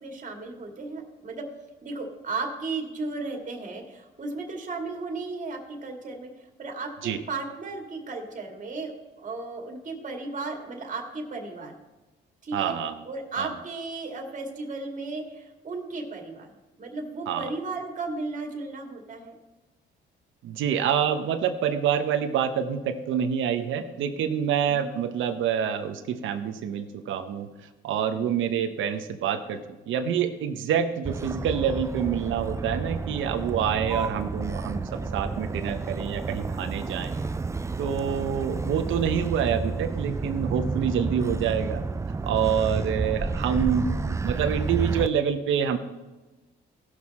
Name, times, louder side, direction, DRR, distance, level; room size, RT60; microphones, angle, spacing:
voice 1, 0.0-1.5 1.8-11.8 12.4-12.8 13.0-16.5 16.8-19.4 24.6-24.9 28.1-28.4 36.2-36.6 37.1-37.6 42.5-42.7, right 3 dB, 40° right, 2 dB, 2.2 m, -35 dB
voice 2, 12.5-12.9 13.4-13.5 17.3-17.4 20.4-27.5 27.8-37.2 37.8-41.8 42.2-43.9 44.2-45.8, right 8 dB, 80° right, 8 dB, 0.9 m, -27 dB
Motor vehicle (road), 31.0-45.1, right 4 dB, 15° right, 0.4 m, -30 dB
16.5 x 6.0 x 4.2 m, 1.1 s
cardioid pair, 90°, 20 cm